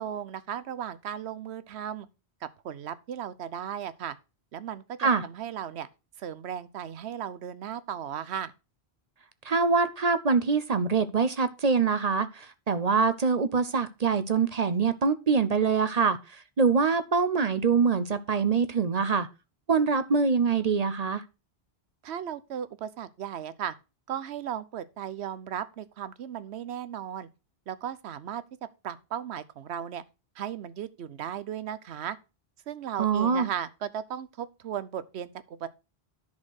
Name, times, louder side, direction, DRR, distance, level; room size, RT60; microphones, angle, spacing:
voice 1, 0.0-2.1 2.4-4.2 4.5-5.9 6.2-8.5 22.0-23.7 24.1-27.3 27.7-30.0 30.4-32.2 32.7-35.7, right 9 dB, 80° right, 1.0 m, -36 dB
voice 2, 9.4-19.3 19.7-21.2 33.0-33.5, right 5 dB, 45° right, 0.7 m, -24 dB
10.5 x 4.3 x 6.4 m
omnidirectional pair, 1.1 m